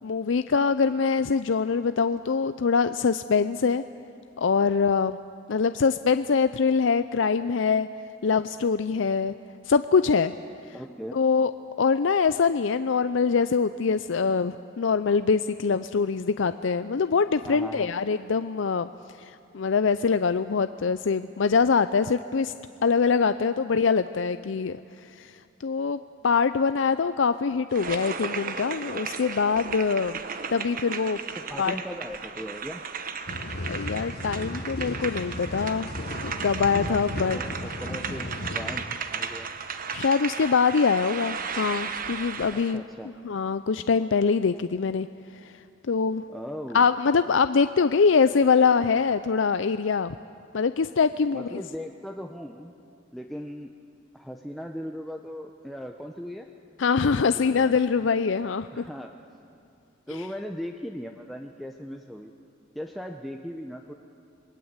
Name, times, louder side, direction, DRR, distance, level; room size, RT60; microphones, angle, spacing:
voice 1, 0.0-3.8 4.4-5.2 5.5-7.9 8.2-9.4 9.7-10.4 10.7-10.8 11.1-11.5 11.8-18.9 19.2-22.5 22.8-25.3 25.6-30.2 30.5-31.2 31.6-31.8 33.6-35.9 36.2-37.4 39.9-42.8 43.2-45.1 45.3-46.2 46.7-50.1 50.5-51.6 56.8-58.8 60.1-60.2, left 5 dB, 75° left, 12 dB, 0.5 m, -24 dB
voice 2, 10.7-11.2 17.4-17.9 31.4-32.8 37.0-38.8 39.1-39.5 42.5-43.1 46.3-46.9 51.3-52.7 53.1-53.7 54.1-56.5 57.1-57.8 58.7-59.1 60.1-62.3 62.7-63.9, equal, ahead, 2 dB, 0.8 m, -38 dB
sound 1, 27.7-42.8, right 6 dB, 45° right, 1.1 m, -35 dB
sound 2, 33.3-38.8, left 1 dB, 55° left, 1.5 m, -35 dB
27.5 x 21.0 x 8.1 m, 2.5 s
head